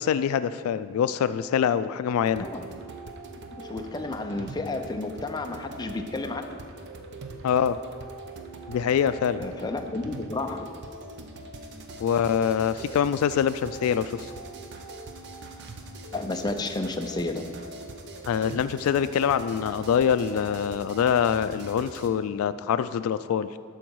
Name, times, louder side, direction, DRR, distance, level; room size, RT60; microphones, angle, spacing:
voice 1, 0.0-2.4 7.4-7.8 8.7-9.4 12.0-14.3 18.3-23.5, left 8 dB, 75° left, 15 dB, 0.3 m, -24 dB
sound 1, 2.2-22.1, right 2 dB, 55° right, 0.7 m, -42 dB
voice 2, 3.6-6.6 9.4-10.7 16.1-17.5, left 2 dB, 20° left, 5 dB, 0.5 m, -31 dB
11.5 x 6.2 x 4.6 m, 2.1 s
head